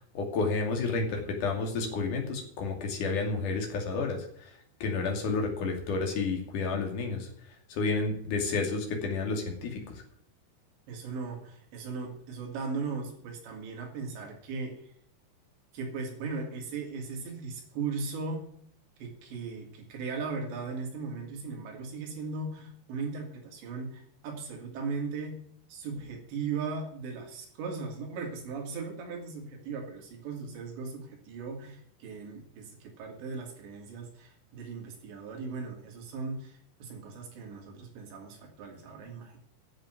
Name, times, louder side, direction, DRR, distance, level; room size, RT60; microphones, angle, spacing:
voice 1, 0.1-4.5 4.8-7.3 7.7-10.0, left 4 dB, 50° left, 2 dB, 3.6 m, -31 dB
voice 2, 10.9-14.9 15.7-18.4 19.0-25.4 25.7-39.4, right 4 dB, 70° right, 2 dB, 4.8 m, -38 dB
11.0 x 7.4 x 9.1 m, 0.64 s
omnidirectional pair, 5.5 m